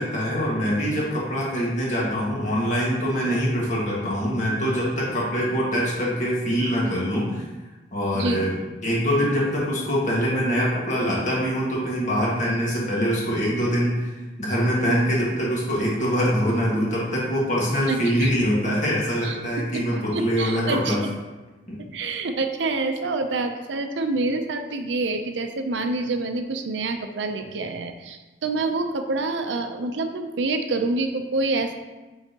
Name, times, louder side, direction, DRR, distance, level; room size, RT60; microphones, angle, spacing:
voice 1, 0.0-7.4 7.9-14.1 14.4-21.0 21.7-21.8, equal, 45° left, -5 dB, 1.7 m, -24 dB
voice 2, 17.9-18.3 19.2-19.4 19.7-19.8 20.1-21.0 21.9-31.8, right 3 dB, 85° right, 7 dB, 0.5 m, -27 dB
8.8 x 3.9 x 2.9 m, 1.2 s
head